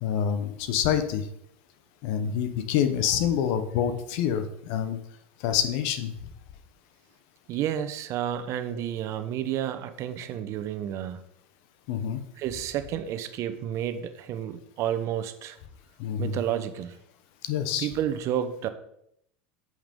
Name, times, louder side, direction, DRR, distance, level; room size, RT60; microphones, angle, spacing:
voice 1, 0.0-1.3 2.0-5.0 5.4-6.1 11.9-12.2 16.0-16.4 17.4-17.9, left 9 dB, 70° left, 9 dB, 1.2 m, -27 dB
voice 2, 7.5-11.2 12.4-15.6 16.2-17.0 17.8-18.7, right 10 dB, 55° right, 11 dB, 1.0 m, -31 dB
8.5 x 8.0 x 3.8 m, 0.74 s
hypercardioid pair, 95°, 6 cm